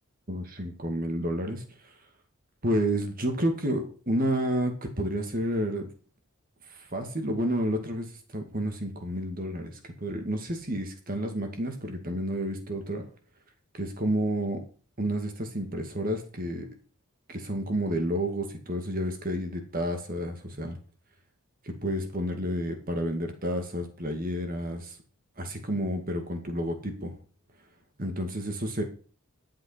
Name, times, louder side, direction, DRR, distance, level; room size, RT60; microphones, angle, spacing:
voice 1, 0.3-1.9 2.6-5.9 6.7-13.1 13.7-14.6 15.0-16.7 17.3-20.8 21.6-25.0 25.4-27.1 28.0-28.8, equal, 40° right, 5 dB, 2.3 m, -30 dB
11.5 x 7.7 x 5.8 m, 0.39 s
head